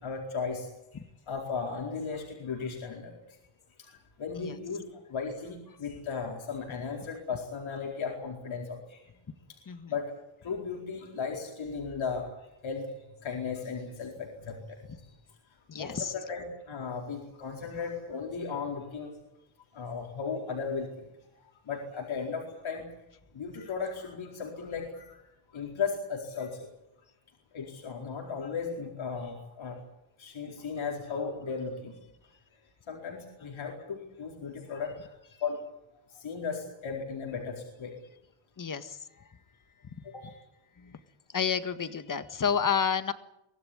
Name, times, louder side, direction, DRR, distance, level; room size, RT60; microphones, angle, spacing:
voice 1, 0.0-1.0 1.3-3.4 3.8-9.0 9.5-10.1 10.4-12.9 13.2-15.2 15.7-19.2 19.7-21.0 21.6-22.8 23.3-25.2 25.5-26.7 27.5-29.8 30.2-31.9 32.9-35.6 36.1-37.9 40.0-40.4, left 5 dB, 70° left, -1 dB, 4.6 m, -36 dB
voice 2, 15.7-16.1 38.6-39.3 39.8-40.0 40.8-41.0 41.3-43.1, left 7 dB, 40° left, 10 dB, 1.7 m, -31 dB
23.5 x 17.5 x 10.0 m, 0.87 s
wide cardioid pair, 115°, 48 cm